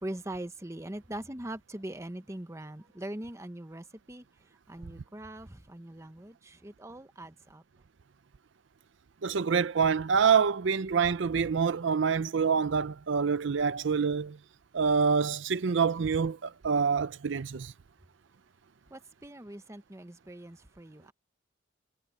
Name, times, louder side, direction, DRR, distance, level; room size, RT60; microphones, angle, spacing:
voice 1, 0.0-4.2 4.7-7.6 18.9-21.1, right 1 dB, 15° right, 0.9 m, -42 dB
voice 2, 9.2-14.4 14.7-17.7, right 6 dB, 65° right, 0.5 m, -26 dB
head